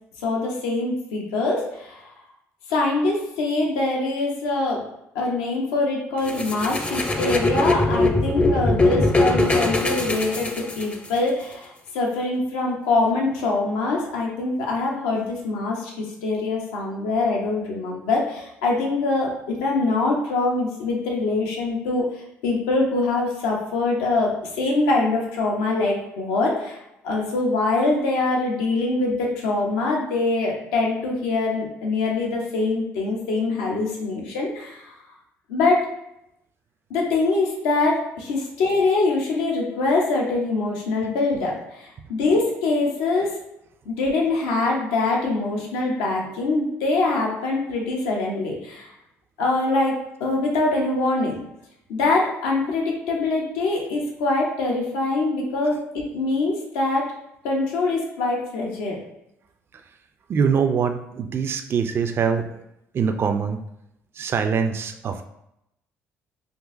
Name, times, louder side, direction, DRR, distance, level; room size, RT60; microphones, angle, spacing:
voice 1, 0.2-2.1 2.7-4.8 5.1-26.8 27.0-34.9 35.5-35.9 36.9-43.4 43.9-48.9 49.4-49.9 50.2-51.4 51.9-57.0 57.4-59.0, left 3 dB, 85° left, -1 dB, 0.7 m, -24 dB
sound 1, 6.3-11.2, left 2 dB, 20° left, 0.5 m, -21 dB
voice 2, 60.3-62.6 62.9-63.6 64.1-65.3, right 6 dB, 40° right, 7 dB, 0.3 m, -23 dB
3.8 x 2.6 x 2.5 m, 0.81 s
supercardioid pair, 65°, 6 cm